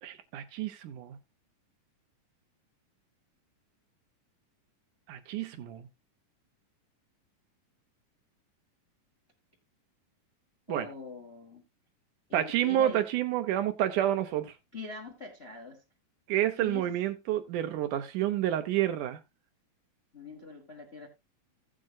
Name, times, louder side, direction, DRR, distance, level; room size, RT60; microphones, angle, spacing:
voice 1, 0.0-1.2 5.1-5.9 10.7-10.9 12.3-14.5 16.3-19.2, right 12 dB, 75° right, 2.2 m, -29 dB
voice 2, 10.7-11.6 12.3-13.0 14.7-15.8 16.6-16.9 20.1-21.1, left 3 dB, 35° left, 0.9 m, -43 dB
16.0 x 7.6 x 2.4 m
omnidirectional pair, 3.9 m